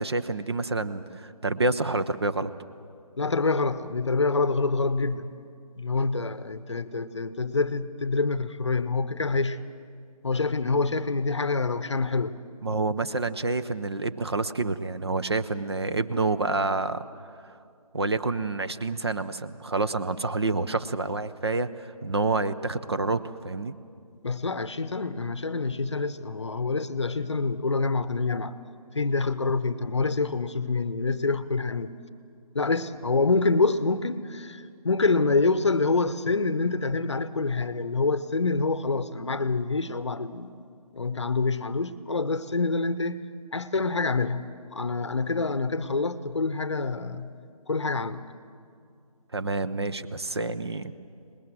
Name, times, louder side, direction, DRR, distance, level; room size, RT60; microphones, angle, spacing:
voice 1, 0.0-2.5 12.6-17.0 17.9-23.7 49.3-50.9, right 3 dB, 40° right, 11 dB, 0.7 m, -28 dB
voice 2, 3.2-5.3 5.8-9.6 10.2-12.3 24.1-28.6 28.9-31.9 32.5-40.7 40.9-43.2 43.5-47.4 47.7-48.2, left 3 dB, 45° left, 14 dB, 0.8 m, -26 dB
24.0 x 20.5 x 7.8 m, 2.4 s
figure-of-eight pair, 155°, 20 cm